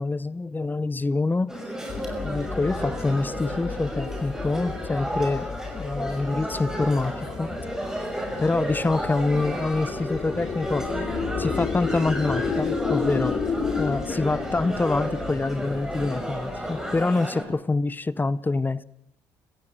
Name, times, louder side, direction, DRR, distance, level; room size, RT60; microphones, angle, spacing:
voice 1, 0.0-1.5 2.2-5.5 5.7-7.5 8.4-10.9 11.4-13.4 13.7-18.8, left 3 dB, 20° left, 0.8 m, -26 dB
sound 1, 1.5-17.4, right 1 dB, 5° right, 5.8 m, -33 dB
sound 2, 1.9-17.1, left 5 dB, 50° left, 3.0 m, -32 dB
27.5 x 15.0 x 7.7 m
supercardioid pair, 65°, 10 cm